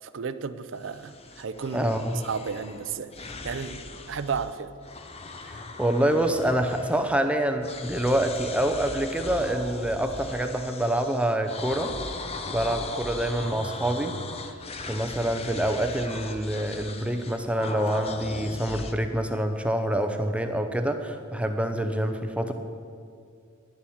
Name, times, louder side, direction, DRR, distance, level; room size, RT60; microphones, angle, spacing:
voice 1, 0.0-3.8 4.1-4.7, right 6 dB, 65° right, 13 dB, 0.5 m, -33 dB
sound 1, 0.8-4.6 4.8-7.4 7.6-18.9, left 3 dB, 30° left, 0.7 m, -39 dB
voice 2, 1.7-2.2 5.4-12.0 12.5-14.1 14.9-22.5, right 1 dB, 5° right, 6 dB, 0.6 m, -26 dB
10.5 x 7.2 x 7.1 m, 2.3 s
head